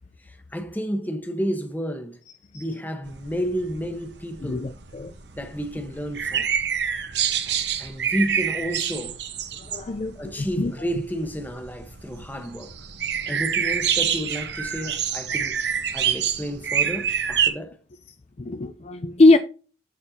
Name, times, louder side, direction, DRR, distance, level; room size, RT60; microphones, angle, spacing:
voice 1, 0.2-2.2 2.5-4.7 5.3-6.5 7.5-9.2 10.1-12.7 13.3-15.6 15.9-17.8, equal, 10° left, 1.0 m, -31 dB
sound 1, 3.1-17.5, right 8 dB, 65° right, 1.0 m, -27 dB
voice 2, 4.4-5.1 9.7-10.7 18.4-19.4, left 2 dB, 35° left, 0.4 m, -21 dB
12.5 x 4.4 x 2.7 m
head